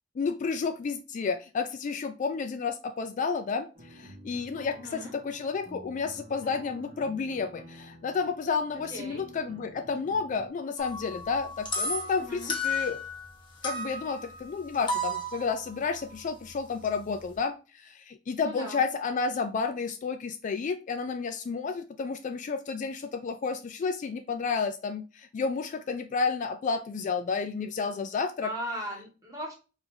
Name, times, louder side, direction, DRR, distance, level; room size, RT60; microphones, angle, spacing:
voice 1, 0.2-13.0 13.6-28.5, left 5 dB, 40° left, 9 dB, 0.3 m, -31 dB
sound 1, 3.7-10.5, right 1 dB, 35° right, 1.0 m, -50 dB
voice 2, 4.7-5.1 8.9-9.2 12.2-12.5 18.4-18.8 28.4-29.5, equal, 20° right, -1 dB, 1.5 m, -38 dB
sound 2, 10.8-13.3 13.6-17.3, left 1 dB, 25° left, 0.9 m, -34 dB
4.8 x 2.6 x 2.7 m, 0.33 s
head